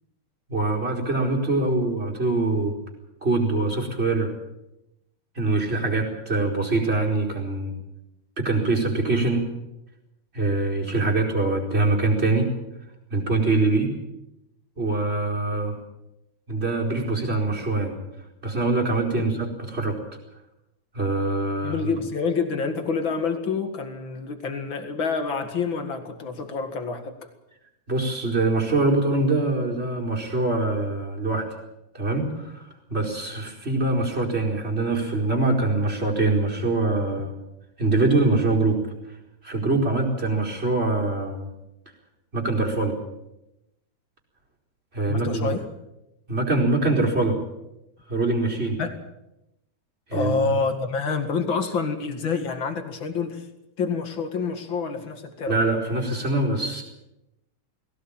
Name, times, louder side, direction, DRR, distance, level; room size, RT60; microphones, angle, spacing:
voice 1, 0.5-2.8 3.2-4.3 5.3-7.7 8.4-9.5 10.3-12.5 13.1-13.9 14.8-15.8 16.5-18.0 18.4-20.0 20.9-21.9 27.9-31.5 31.9-37.3 37.8-38.9 39.4-41.5 42.3-43.0 44.9-45.5 46.3-47.4 48.1-48.8 50.1-50.5 55.5-56.8, right 2 dB, 15° right, -1 dB, 4.4 m, -24 dB
voice 2, 21.6-27.1 45.1-45.6 48.8-49.0 50.1-53.5 53.8-55.6, left 5 dB, 40° left, 7 dB, 1.9 m, -27 dB
21.0 x 17.5 x 8.9 m, 0.90 s
omnidirectional pair, 4.7 m